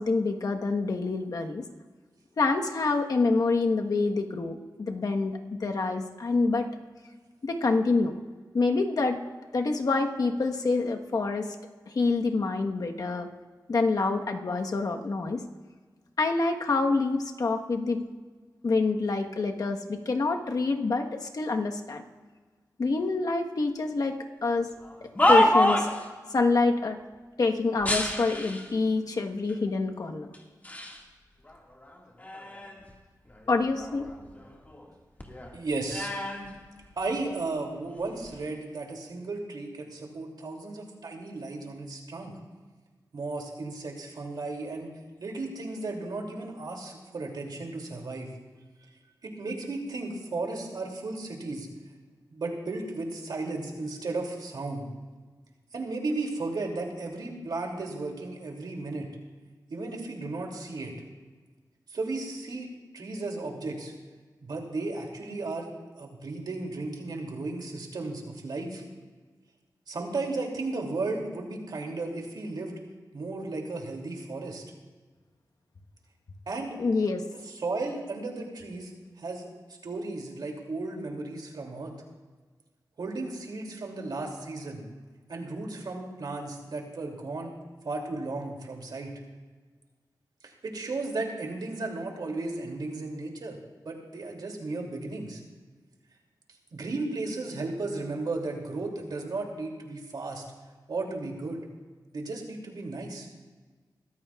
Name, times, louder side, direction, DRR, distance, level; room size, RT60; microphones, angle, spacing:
voice 1, 0.0-1.6 2.4-6.7 7.4-8.1 8.5-9.2 9.5-11.5 11.9-13.3 13.7-15.4 16.2-18.0 18.6-22.0 22.8-24.7 25.0-25.9 26.3-27.0 27.4-30.3 33.5-34.1 76.8-77.2, left 3 dB, 60° left, 3 dB, 1.3 m, -26 dB
sound 1, 24.8-26.1 27.8-28.7 29.5-29.6 30.3-31.0 31.4-32.9 33.3-34.9 35.2-37.3 38.1-38.4, left 1 dB, 25° left, 1.9 m, -28 dB
voice 2, 35.5-36.1 37.0-42.4 43.1-44.9 45.2-48.3 49.2-51.7 52.3-54.9 55.7-59.1 59.7-60.9 61.9-62.7 62.9-63.9 64.4-68.8 69.9-72.7 73.1-74.6 76.5-76.8 77.5-78.9 79.2-79.5 79.8-81.9 83.0-84.8 85.3-87.5 87.8-89.2 90.4-93.6 93.8-95.4 96.7-100.4 100.9-101.6 102.1-103.3, right 3 dB, 70° right, 1 dB, 2.8 m, -34 dB
23.0 x 15.0 x 2.4 m, 1.4 s
wide cardioid pair, 100°, 7 cm